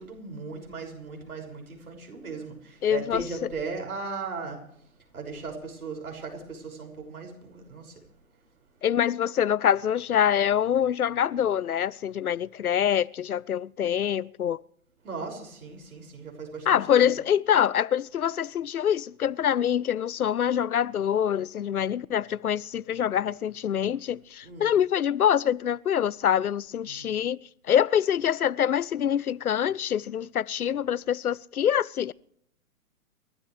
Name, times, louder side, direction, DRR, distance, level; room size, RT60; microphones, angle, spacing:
voice 1, 0.0-4.9 5.1-8.0 15.0-17.1 24.4-24.7 26.8-27.1, right 4 dB, 75° right, 6.1 m, -37 dB
voice 2, 2.8-3.2 8.8-14.6 16.7-27.4 27.7-32.1, left 9 dB, 80° left, 0.7 m, -25 dB
29.5 x 13.0 x 3.3 m
figure-of-eight pair, 120°, 44 cm